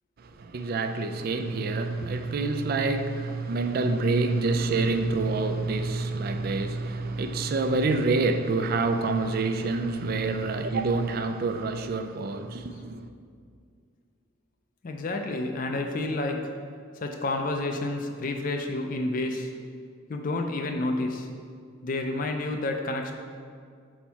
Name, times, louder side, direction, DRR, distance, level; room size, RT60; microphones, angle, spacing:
voice 1, 0.2-13.0, right 3 dB, 45° right, 0.3 m, -27 dB
voice 2, 14.8-16.5 17.0-19.5 20.1-21.3 21.8-23.1, left 2 dB, 40° left, 0.4 m, -29 dB
4.5 x 4.3 x 5.7 m
head